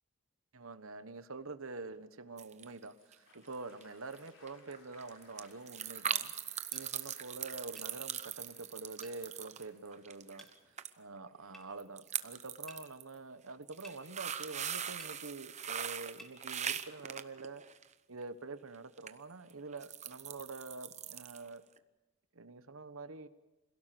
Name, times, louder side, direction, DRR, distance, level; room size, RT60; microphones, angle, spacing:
voice 1, 0.5-6.3 6.7-17.6 18.1-21.6 22.3-23.3, right 3 dB, 65° right, 11 dB, 1.2 m, -46 dB
sound 1, 2.4-2.8 3.1-3.5 3.8-3.9 4.1-4.2 4.5-10.5 10.8-10.9 11.2-11.3 11.8-13.0 13.5-17.9 19.0-19.1 19.5-21.5 21.8-21.9, right 9 dB, 30° right, 0.9 m, -40 dB
Applause, 2.9-11.8, left 3 dB, 60° left, 4.8 m, -66 dB
sound 2, 6.7-6.9 7.8-7.9 9.0-9.2 10.4-10.5 11.5-11.7 12.7-12.8 13.8-14.0 15.0-15.2 16.2-16.4, equal, ahead, 2.6 m, -53 dB
27.5 x 17.0 x 7.8 m, 1.0 s
head